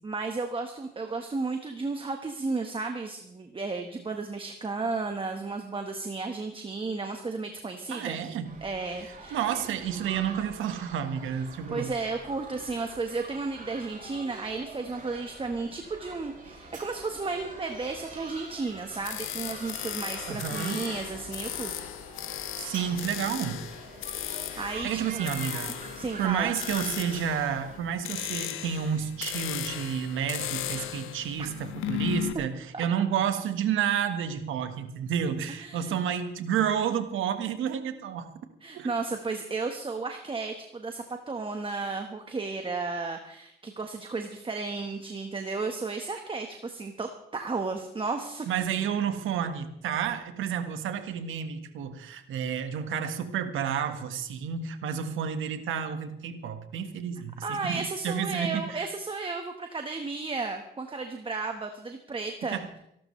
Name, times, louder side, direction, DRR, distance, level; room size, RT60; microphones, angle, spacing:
voice 1, 0.0-8.2 8.6-9.4 9.7-9.8 11.7-21.7 24.6-25.3 25.6-25.7 25.9-26.5 31.4-31.5 32.7-32.8 35.5-36.0 38.6-48.5 57.4-62.6, right 3 dB, 25° right, 5 dB, 1.4 m, -33 dB
voice 2, 7.9-8.5 9.3-11.9 20.3-20.8 22.6-23.6 24.5-25.8 26.2-38.3 38.7-38.9 48.5-58.8 62.5-62.7, right 8 dB, 80° right, 8 dB, 1.6 m, -30 dB
sound 1, 8.5-27.8, right 3 dB, 45° right, 6.7 m, -45 dB
sound 2, 19.0-32.3, left 12 dB, 85° left, 1.0 m, -36 dB
25.5 x 12.5 x 3.3 m, 0.77 s
cardioid pair, 90°, 20 cm